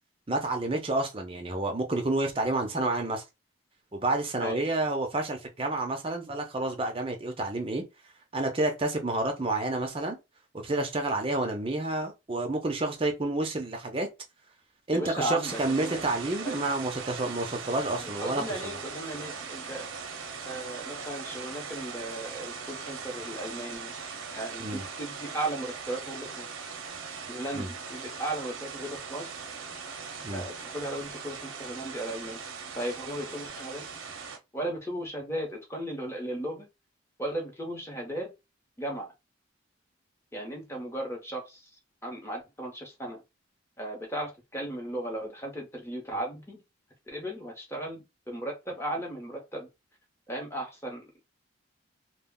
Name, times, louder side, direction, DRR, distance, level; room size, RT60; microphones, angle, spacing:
voice 1, 0.3-3.2 3.9-7.8 8.3-10.2 10.6-14.1 14.9-18.8 24.6-24.8 27.5-27.7 30.2-30.4, right 2 dB, 25° right, 0.6 m, -29 dB
voice 2, 14.9-16.0 16.4-16.7 17.9-19.9 20.5-23.9 24.4-26.5 27.3-29.3 30.3-32.4 32.8-33.8 34.5-36.7 37.2-38.3 38.8-39.1 40.3-41.7 42.0-43.2 43.8-46.6 47.1-49.7 50.3-51.2, right 1 dB, 15° left, 0.8 m, -36 dB
sound 1, 15.4-34.4, right 5 dB, 90° right, 0.6 m, -40 dB
2.3 x 2.1 x 3.6 m
head